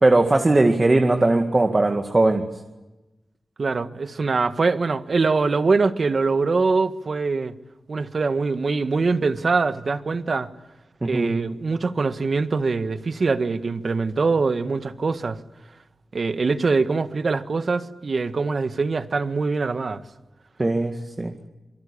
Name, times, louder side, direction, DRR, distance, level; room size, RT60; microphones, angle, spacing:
voice 1, 0.0-2.5 11.0-11.3 20.6-21.3, right 2 dB, 30° right, 2.1 m, -19 dB
voice 2, 3.6-7.6 7.9-10.5 11.0-15.4 16.1-20.0, right 4 dB, 55° right, 1.5 m, -23 dB
26.5 x 24.0 x 8.6 m
wide cardioid pair, 75°, 0 cm